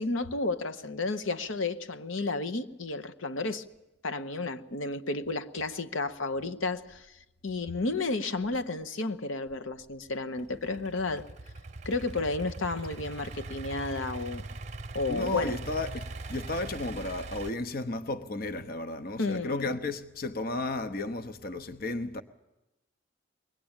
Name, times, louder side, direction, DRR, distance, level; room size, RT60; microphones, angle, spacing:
voice 1, 0.0-3.6 4.0-7.1 7.4-11.3 11.8-14.4 14.9-15.5 19.2-19.8, left 3 dB, 85° left, 1.0 m, -32 dB
Idling / Accelerating revving vroom, 10.4-17.5, right 2 dB, 35° right, 0.8 m, -41 dB
voice 2, 15.1-22.2, left 2 dB, 45° left, 0.9 m, -33 dB
23.0 x 19.0 x 8.9 m
head